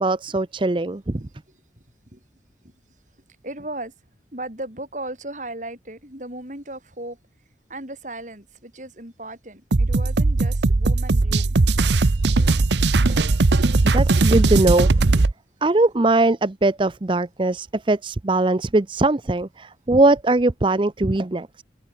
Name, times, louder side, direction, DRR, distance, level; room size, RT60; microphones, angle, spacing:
voice 1, 0.0-1.2 13.8-14.9 15.6-21.6, right 2 dB, 25° right, 0.6 m, -20 dB
voice 2, 1.2-1.6 2.1-2.2 3.4-3.9 4.3-7.2 7.7-11.6, right 1 dB, 45° right, 5.6 m, -36 dB
sound 1, 9.7-15.3, right 3 dB, 75° right, 0.8 m, -18 dB
head